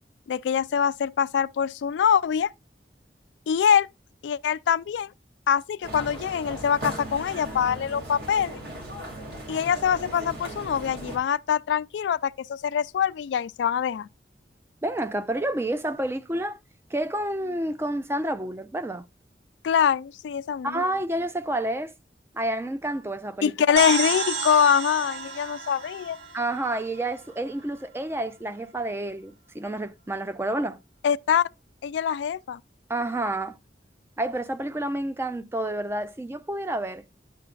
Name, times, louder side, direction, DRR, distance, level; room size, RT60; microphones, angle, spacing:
voice 1, 0.3-2.5 3.5-3.9 4.2-5.1 5.5-8.6 9.5-14.1 19.6-20.8 23.4-26.2 31.0-31.4 31.8-32.6, left 8 dB, 85° left, 0.3 m, -24 dB
sound 1, 5.8-11.2, right 1 dB, 65° right, 2.4 m, -37 dB
voice 2, 14.8-16.6 16.9-19.0 20.6-21.9 22.3-23.8 26.3-30.8 32.9-33.6 34.2-37.0, right 1 dB, 15° right, 0.3 m, -29 dB
sound 2, 23.8-27.4, right 5 dB, 80° right, 0.9 m, -31 dB
9.9 x 5.8 x 2.3 m
head